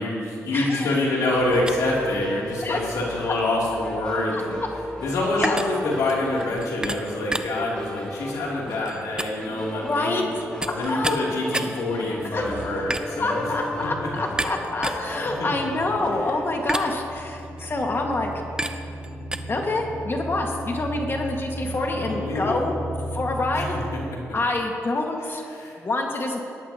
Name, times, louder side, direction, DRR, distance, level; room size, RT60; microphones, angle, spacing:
voice 1, 0.0-4.6 5.0-10.3 10.7-13.5 14.0-14.1 14.9-15.0 15.4-15.5 21.6-22.6 23.5-23.6 23.9-24.0 25.5-25.7, left 2 dB, 85° left, -4 dB, 2.9 m, -26 dB
voice 2, 0.5-1.3 2.6-2.8 4.3-4.4 5.4-5.6 9.8-10.2 10.8-11.3 12.2-12.9 13.2-18.4 19.5-22.7 23.1-23.8 24.3-25.4 25.8-26.4, left 2 dB, 40° left, 1 dB, 1.7 m, -27 dB
sound 1, 1.3-16.1, left 1 dB, 15° left, 2.7 m, -36 dB
sound 2, 1.5-19.4, right 1 dB, 15° right, 0.7 m, -34 dB
sound 3, 9.4-24.1, equal, 65° left, 1.3 m, -37 dB
17.5 x 11.5 x 2.9 m, 2.5 s
cardioid pair, 60°, 6 cm